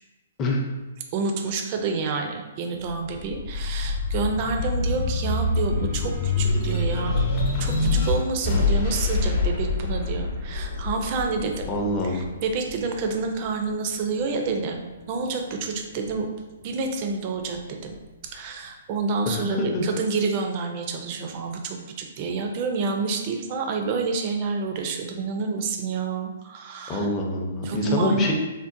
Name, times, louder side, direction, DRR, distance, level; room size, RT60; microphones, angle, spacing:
voice 1, 1.1-7.2 7.6-11.7 12.0-14.8 15.1-16.3 16.6-18.0 18.2-27.1 27.6-28.3, right 4 dB, 35° right, 4 dB, 0.4 m, -28 dB
sound 1, 2.9-13.7 14.2-15.3, left 3 dB, 40° left, 0.8 m, -26 dB
voice 2, 11.7-12.3 19.3-19.9 26.9-28.3, left 1 dB, 20° left, 0 dB, 0.5 m, -26 dB
3.7 x 2.1 x 2.5 m, 1.1 s
hypercardioid pair, 150°, 0 cm